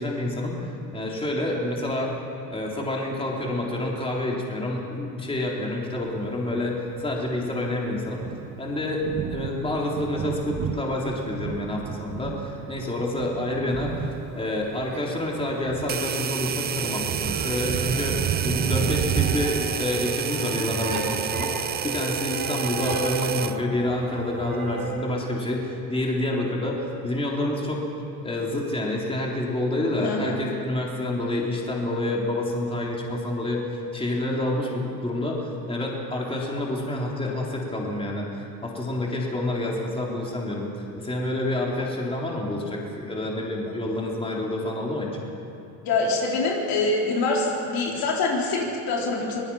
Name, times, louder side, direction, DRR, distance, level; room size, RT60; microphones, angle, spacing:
voice 1, 0.0-2.2 2.5-8.3 8.6-14.0 14.3-27.9 28.2-33.6 33.9-40.7 41.0-45.2, left 1 dB, 15° left, -2 dB, 3.8 m, -28 dB
Thunder, 6.1-19.7, right 8 dB, 45° right, 1.0 m, -32 dB
sound 1, 13.8-24.9, right 3 dB, 60° right, 5.6 m, -35 dB
sound 2, 15.9-23.6, right 9 dB, 25° right, 0.4 m, -30 dB
voice 2, 30.0-30.4 45.8-49.4, left 3 dB, 70° left, -2 dB, 4.2 m, -25 dB
25.0 x 19.0 x 5.8 m, 2.8 s
cardioid pair, 105°, 37 cm